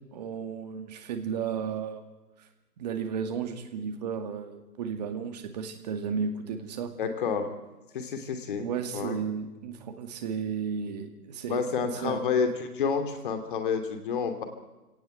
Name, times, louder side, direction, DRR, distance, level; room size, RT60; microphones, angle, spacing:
voice 1, 0.1-2.0 2.8-6.9 8.6-12.2, right 6 dB, 25° right, 7 dB, 2.2 m, -33 dB
voice 2, 7.0-7.5 7.9-8.7 8.9-9.2 11.5-14.4, left 6 dB, 30° left, 7 dB, 2.8 m, -29 dB
29.0 x 18.0 x 8.0 m, 1.1 s
figure-of-eight pair, 155°, 47 cm